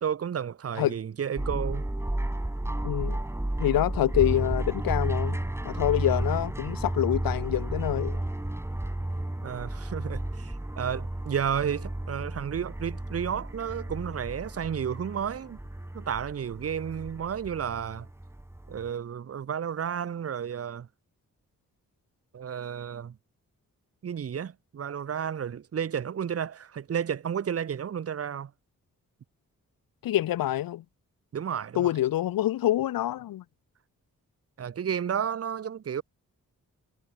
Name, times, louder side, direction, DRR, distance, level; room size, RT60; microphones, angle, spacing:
voice 1, 0.0-1.9 9.4-15.6 15.9-18.1 18.7-20.9 22.3-23.2 24.0-28.5 31.3-31.9 34.6-36.0, right 8 dB, 45° right, 0.6 m, -32 dB
sound 1, 1.4-18.9, right 1 dB, 5° right, 0.9 m, -32 dB
voice 2, 2.8-3.2 3.6-5.4 5.6-8.2 30.0-30.8 31.7-33.4, left 13 dB, 75° left, 0.5 m, -26 dB
cardioid pair, 50°, 35 cm